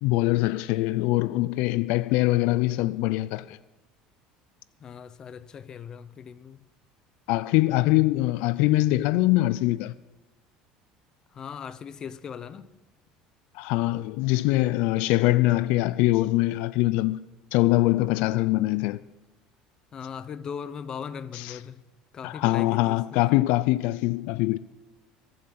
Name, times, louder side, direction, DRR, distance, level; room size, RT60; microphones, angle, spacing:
voice 1, 0.0-3.6 7.3-9.9 13.5-17.2 17.5-19.0 21.3-21.6 22.2-24.6, left 18 dB, 70° left, 0.4 m, -23 dB
voice 2, 4.8-6.7 11.3-12.7 19.9-21.8 22.1-23.3, left 7 dB, 30° left, 0.7 m, -39 dB
23.0 x 7.8 x 5.9 m
cardioid pair, 140°, 2 cm